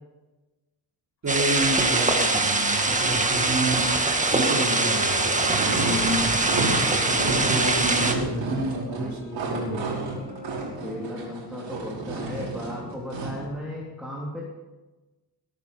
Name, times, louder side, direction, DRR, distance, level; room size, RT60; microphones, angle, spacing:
voice 1, 1.2-3.9 4.3-10.0, right 1 dB, 40° right, -4 dB, 4.2 m, -29 dB
sound 1, 1.3-8.1, right 2 dB, 15° right, 1.8 m, -23 dB
sound 2, 1.7-8.5 8.9-11.9, left 3 dB, 55° left, 2.3 m, -41 dB
sound 3, 5.4-13.5, right 3 dB, 85° right, 5.7 m, -32 dB
voice 2, 8.8-9.4 10.8-14.4, left 1 dB, ahead, -4 dB, 3.2 m, -36 dB
21.5 x 10.5 x 5.5 m, 1.2 s
cardioid pair, 125°, 44 cm